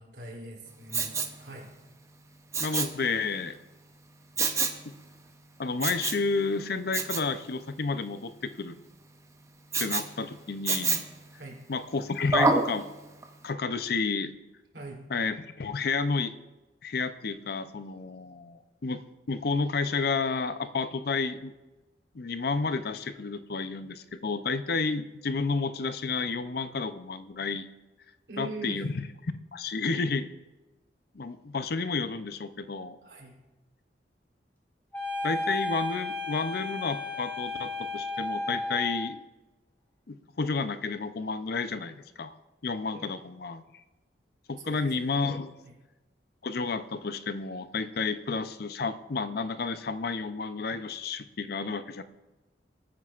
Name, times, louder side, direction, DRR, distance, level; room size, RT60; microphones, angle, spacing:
voice 1, 0.0-1.7 11.4-11.6 14.7-15.0 28.3-28.8 33.0-33.4 42.9-43.2 44.6-44.9 45.6-45.7, right 2 dB, 85° right, -2 dB, 3.2 m, -42 dB
Respiratory sounds, 0.9-1.4 2.5-3.0 4.4-4.8 5.8-6.3 6.9-7.3 9.7-10.1 10.7-11.2 12.3-12.7 13.2-13.3, right 3 dB, 15° right, 0.7 m, -27 dB
voice 2, 2.6-3.6 4.8-4.9 5.6-8.7 9.8-11.0 11.7-12.9 13.4-14.3 15.1-16.3 16.8-19.0 19.3-21.5 22.1-27.7 28.4-29.1 29.5-30.3 31.1-33.0 35.2-39.2 40.1-42.4 42.6-43.6 44.5-45.5 46.4-52.0, left 4 dB, 60° left, 11 dB, 0.6 m, -31 dB
sound 1, 34.9-39.1, left 2 dB, 10° left, 3.0 m, -33 dB
20.0 x 9.3 x 2.5 m, 1.1 s
head